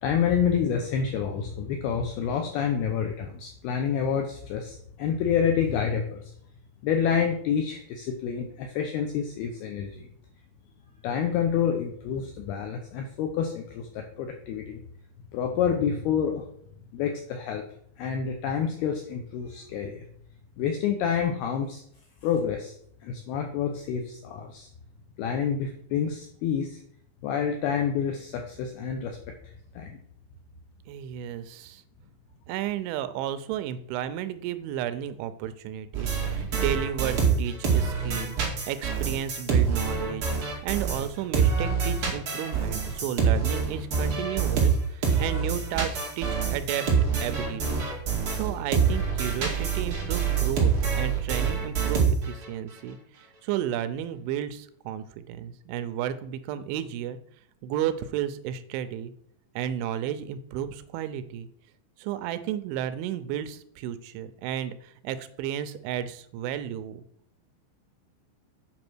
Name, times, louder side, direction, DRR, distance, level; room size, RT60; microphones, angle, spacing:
voice 1, 0.0-6.2 6.8-10.1 11.0-14.8 15.3-16.5 16.9-17.6 18.0-20.1 20.6-21.8 22.2-22.8 23.0-24.7 25.2-26.8 27.2-29.2 29.4-30.0, left 7 dB, 75° left, 4 dB, 2.4 m, -28 dB
voice 2, 30.9-31.8 32.5-38.4 38.7-46.9 47.2-47.9 48.3-57.2 57.6-59.1 59.6-61.5 62.0-67.0, right 10 dB, 90° right, 12 dB, 3.1 m, -33 dB
sound 1, 35.9-41.1 41.3-52.5, right 6 dB, 40° right, 2.1 m, -26 dB
8.8 x 5.5 x 6.1 m, 0.66 s
omnidirectional pair, 5.3 m